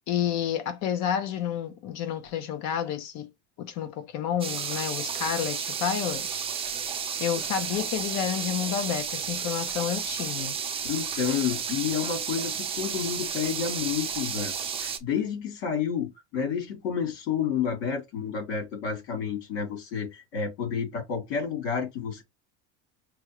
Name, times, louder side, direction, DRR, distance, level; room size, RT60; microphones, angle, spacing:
voice 1, 0.1-3.3 3.6-6.5 6.8-6.9 7.2-10.6, left 9 dB, 55° left, 0.9 m, -30 dB
sound 1, 4.4-15.0, right 7 dB, 15° right, 0.5 m, -32 dB
voice 2, 10.9-22.2, left 7 dB, 75° left, 3.3 m, -30 dB
6.1 x 2.4 x 3.0 m
cardioid pair, 160°, 33 cm